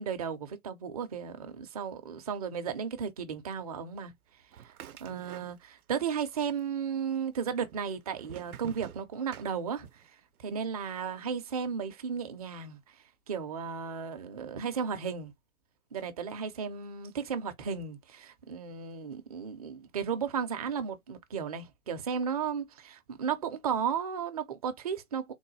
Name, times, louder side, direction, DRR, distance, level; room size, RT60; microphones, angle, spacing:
voice 1, 0.0-4.1 5.0-10.0 10.4-12.8 13.3-15.3 15.9-25.3, right 7 dB, 30° right, 0.4 m, -34 dB
sound 1, 4.5-6.0 6.2-7.0 7.6-10.1, right 9 dB, 80° right, 0.6 m, -48 dB
3.8 x 2.1 x 3.0 m
figure-of-eight pair, 125°, 43 cm